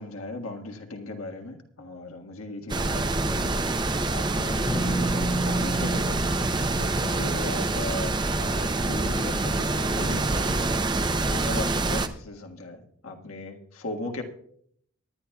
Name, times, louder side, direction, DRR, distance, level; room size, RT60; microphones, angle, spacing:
voice 1, 0.0-3.5 4.1-6.3 6.6-14.2, left 2 dB, 80° left, 3 dB, 1.7 m, -37 dB
sound 1, 2.7-12.1, right 2 dB, 20° right, 0.5 m, -26 dB
sound 2, 4.7-9.6, right 1 dB, 20° left, 0.7 m, -33 dB
25.0 x 10.5 x 2.3 m, 0.65 s
head